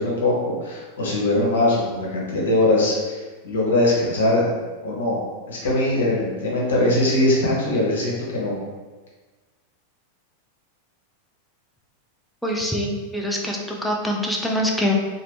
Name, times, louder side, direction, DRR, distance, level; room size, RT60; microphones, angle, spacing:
voice 1, 0.0-4.5 4.8-5.2 5.5-8.6, left 1 dB, 60° left, -4 dB, 1.0 m, -21 dB
voice 2, 12.4-15.0, left 1 dB, ahead, -1 dB, 0.4 m, -24 dB
2.9 x 2.5 x 3.0 m, 1.3 s
figure-of-eight pair, 90°, 0 cm